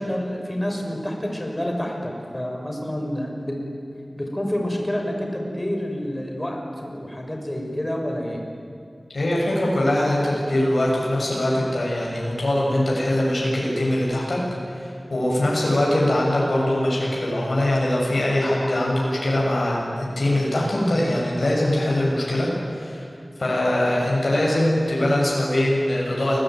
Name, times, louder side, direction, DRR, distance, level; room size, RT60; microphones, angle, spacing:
voice 1, 0.0-3.6 4.2-8.4, equal, 20° left, 1 dB, 6.4 m, -28 dB
voice 2, 9.1-14.4 14.7-22.5 22.7-23.0 23.4-26.4, left 1 dB, 70° left, -4 dB, 7.5 m, -22 dB
29.0 x 22.0 x 9.4 m, 2.6 s
wide cardioid pair, 55°, 0 cm